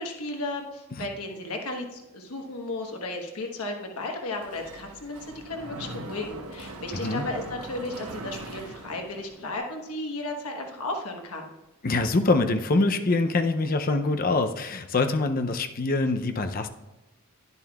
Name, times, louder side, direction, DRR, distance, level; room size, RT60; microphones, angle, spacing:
voice 1, 0.0-11.5, left 2 dB, 85° left, 3 dB, 1.2 m, -34 dB
Mechanisms, 4.4-9.6, right 2 dB, 80° right, 1.0 m, -40 dB
voice 2, 6.9-7.2 11.8-16.7, left 3 dB, 40° left, 7 dB, 0.5 m, -24 dB
10.5 x 10.5 x 2.3 m, 1.0 s
head